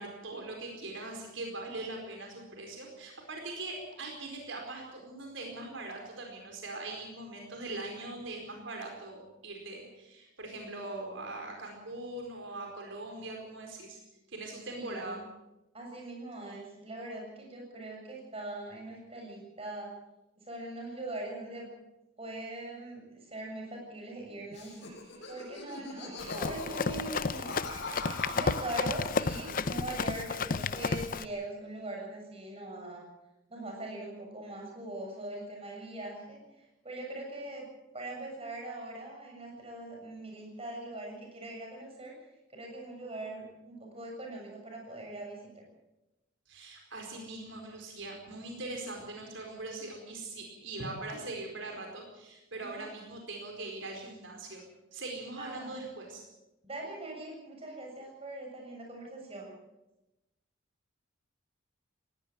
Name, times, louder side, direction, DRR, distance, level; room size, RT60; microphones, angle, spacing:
voice 1, 0.0-14.0 14.3-15.2 46.5-54.6 54.9-56.3, right 2 dB, 70° right, 2 dB, 4.6 m, -41 dB
voice 2, 14.7-15.2 15.7-19.9 20.4-21.7 22.2-24.8 25.3-27.5 28.3-33.1 33.5-37.7 37.9-42.2 42.5-45.6 52.5-52.8 55.4-55.7 56.6-59.5, right 1 dB, 30° right, 0 dB, 7.3 m, -41 dB
Laughter, 24.5-30.3 30.5-31.3, left 2 dB, 60° left, 7.6 m, -42 dB
Run, 26.2-31.2, left 4 dB, 45° left, 0.6 m, -32 dB
19.5 x 17.0 x 7.7 m, 0.97 s
head